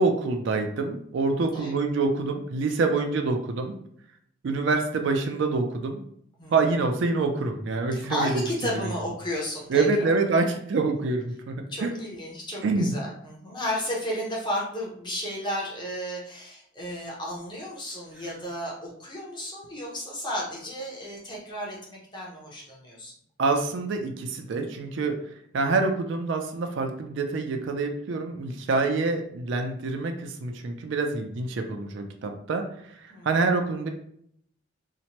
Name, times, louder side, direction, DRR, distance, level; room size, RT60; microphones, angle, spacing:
voice 1, 0.0-3.7 4.4-6.0 6.5-8.4 8.8-8.9 9.7-11.9 12.6-12.9 23.4-25.2 25.5-33.9, right 3 dB, 60° right, 5 dB, 0.3 m, -26 dB
voice 2, 8.0-10.1 11.7-23.1 33.1-33.3, equal, 20° left, -4 dB, 0.6 m, -33 dB
2.8 x 2.1 x 2.8 m, 0.67 s
head